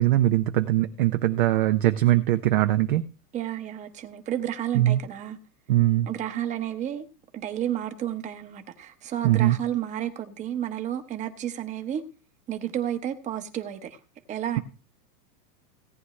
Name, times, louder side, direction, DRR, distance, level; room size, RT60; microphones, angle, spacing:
voice 1, 0.0-3.0 4.7-5.0 5.7-6.1 9.2-9.6, right 14 dB, 35° right, 0.4 m, -21 dB
voice 2, 3.3-5.4 6.1-7.0 7.3-12.0 12.5-14.0 14.3-14.6, right 11 dB, 15° right, 0.9 m, -31 dB
17.5 x 9.3 x 3.2 m
supercardioid pair, 160°, 47 cm